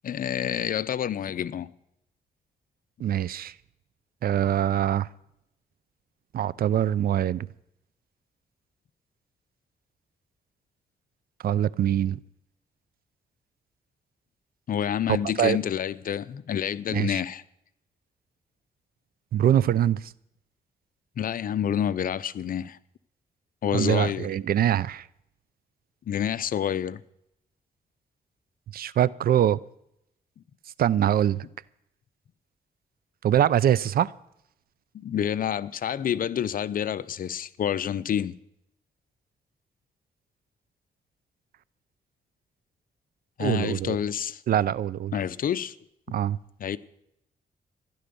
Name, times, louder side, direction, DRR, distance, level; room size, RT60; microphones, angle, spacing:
voice 1, 0.0-1.7 14.7-17.4 21.2-22.8 23.6-24.3 26.1-27.0 34.9-38.3 43.4-44.4 45.1-45.8 46.6-46.8, left 9 dB, 60° left, 0.7 m, -28 dB
voice 2, 3.0-3.5 4.2-5.1 6.3-7.5 11.4-12.2 15.1-15.6 16.9-17.2 19.3-20.1 23.7-25.1 28.7-29.6 30.8-31.4 33.2-34.1 43.4-44.0 44.5-45.1 46.1-46.4, right 10 dB, 70° right, 0.6 m, -23 dB
15.0 x 11.5 x 6.9 m
cardioid pair, 90°, 16 cm